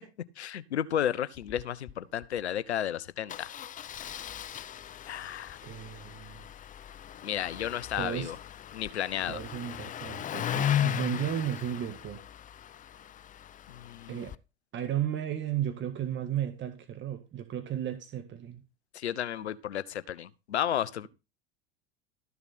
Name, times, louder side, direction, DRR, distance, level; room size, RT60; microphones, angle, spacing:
voice 1, 0.4-3.5 5.1-5.6 7.2-8.4 8.7-9.4 13.7-14.2 18.9-21.1, left 10 dB, 85° left, 0.8 m, -33 dB
Engine starting, 1.4-1.6 1.9-2.0 2.2-2.4 3.3-14.4, left 10 dB, 25° left, 0.5 m, -37 dB
voice 2, 5.6-6.5 8.0-8.3 9.3-12.2 14.1-14.3 14.7-18.6, right 10 dB, 35° right, 1.8 m, -34 dB
13.5 x 6.9 x 4.3 m
hypercardioid pair, 85°, 32 cm